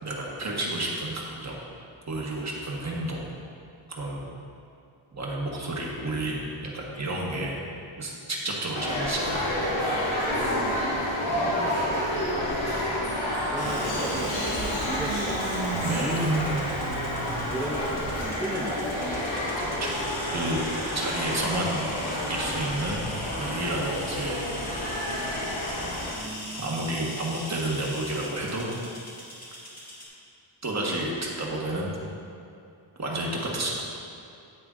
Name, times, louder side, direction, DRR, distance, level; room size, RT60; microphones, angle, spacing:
voice 1, 0.0-1.6 2.1-3.3 3.9-4.3 5.1-7.7 8.0-9.5 15.8-16.2 19.8-21.8 22.3-23.1 23.4-24.5 26.6-28.7 30.6-32.0 33.0-33.8, right 1 dB, 35° right, -3 dB, 1.3 m, -31 dB
sound 1, 8.7-26.1, left 1 dB, 70° left, 2.0 m, -29 dB
voice 2, 10.4-10.9 12.6-15.4 15.9-18.9 26.1-27.1, right 1 dB, 5° right, -2 dB, 0.5 m, -37 dB
sound 2, 13.6-30.1, left 1 dB, 30° left, 1.6 m, -41 dB
Engine starting, 13.6-20.1, right 4 dB, 90° right, 0.8 m, -35 dB
9.3 x 9.0 x 2.5 m, 2.6 s
wide cardioid pair, 140°, 48 cm